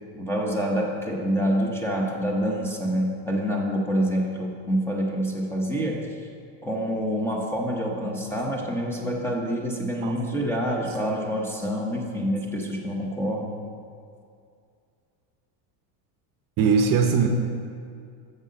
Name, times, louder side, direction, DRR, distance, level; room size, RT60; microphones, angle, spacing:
voice 1, 0.1-6.2 6.6-13.6, equal, 5° left, -1 dB, 0.8 m, -27 dB
voice 2, 16.6-17.3, right 6 dB, 45° right, 5 dB, 0.7 m, -20 dB
6.6 x 5.4 x 6.4 m, 2.3 s
supercardioid pair, 130°, 48 cm